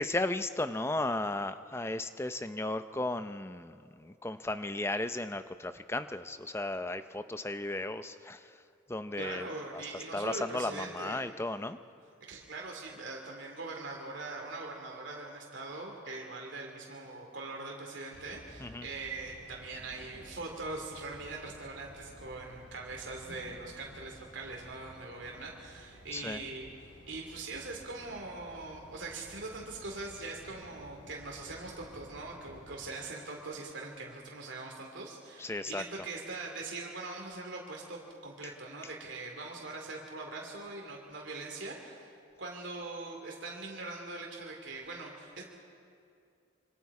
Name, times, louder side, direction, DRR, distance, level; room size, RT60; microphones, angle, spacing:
voice 1, 0.0-8.5 8.9-9.5 9.7-9.8 10.1-11.8 18.6-18.9 26.1-26.4 35.4-35.8, left 2 dB, 15° left, 11 dB, 0.5 m, -35 dB
voice 2, 9.2-11.2 12.3-26.7 27.1-42.1 42.4-45.4, right 3 dB, 75° right, 0 dB, 2.7 m, -42 dB
sound 1, 18.1-32.8, equal, 75° left, 4.2 m, -54 dB
26.0 x 25.0 x 4.9 m, 2.4 s
head